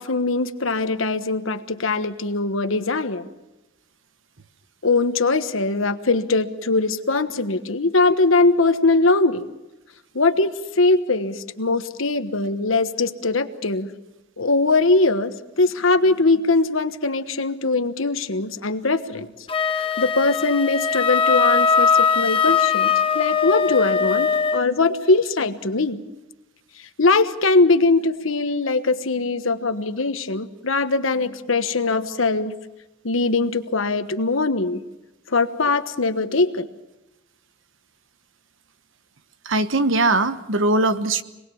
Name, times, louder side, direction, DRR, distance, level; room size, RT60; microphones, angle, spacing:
voice 1, 0.0-3.3 4.8-9.5 10.1-13.9 14.4-19.3 19.7-26.0 27.0-32.5 33.0-34.8 35.3-36.7, left 3 dB, 75° left, 10 dB, 1.3 m, -21 dB
Wind instrument woodwind instrument, 19.5-24.7, left 6 dB, 25° left, 1.1 m, -20 dB
voice 2, 39.4-41.2, right 2 dB, 70° right, 11 dB, 1.1 m, -20 dB
26.0 x 19.5 x 7.1 m, 1.0 s
head